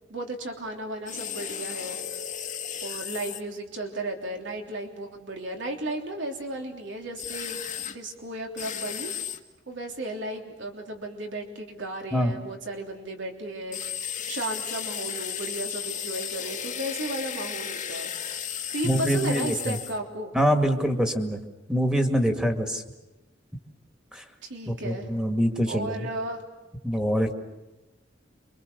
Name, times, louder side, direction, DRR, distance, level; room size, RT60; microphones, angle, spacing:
voice 1, 0.1-2.0 2.8-9.1 9.7-18.1 18.5-20.3 24.4-25.1 25.7-26.4, right 1 dB, 75° right, 2 dB, 3.4 m, -34 dB
sound 1, 1.1-3.4 7.2-8.0 8.6-9.4 13.7-20.0, left 9 dB, 45° left, 1.5 m, -34 dB
voice 2, 18.8-19.8 20.3-21.4 21.7-22.8 24.1-24.2 24.7-26.1 26.8-27.3, equal, 5° right, 4 dB, 2.1 m, -24 dB
28.5 x 24.5 x 6.9 m, 1.1 s
head